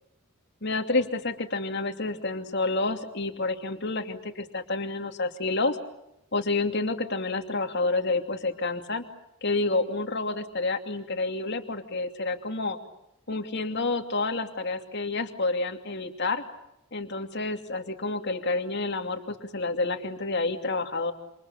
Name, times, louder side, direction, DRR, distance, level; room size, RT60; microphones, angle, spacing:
voice 1, 0.6-5.8 6.3-9.0 9.4-12.8 13.3-16.4 16.9-21.1, left 3 dB, 55° left, 6 dB, 2.8 m, -29 dB
28.0 x 27.5 x 7.2 m, 0.83 s
head